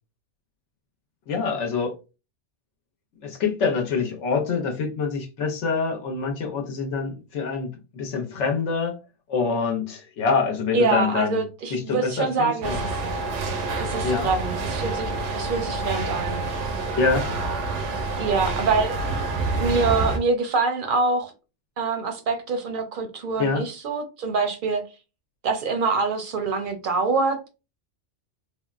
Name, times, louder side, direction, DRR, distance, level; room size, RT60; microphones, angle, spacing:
voice 1, 1.3-1.9 3.2-8.9 9.3-11.4 11.7-12.7 14.0-14.3 17.0-17.3 23.4-23.6, left 5 dB, 80° left, 1.0 m, -25 dB
voice 2, 10.7-12.9 13.8-16.4 18.2-19.0 19.5-21.3 21.8-24.8 25.4-27.5, right 4 dB, 60° right, 0.6 m, -25 dB
sound 1, 12.6-20.2, right 3 dB, 85° right, 0.9 m, -27 dB
3.5 x 2.1 x 2.4 m
omnidirectional pair, 1.2 m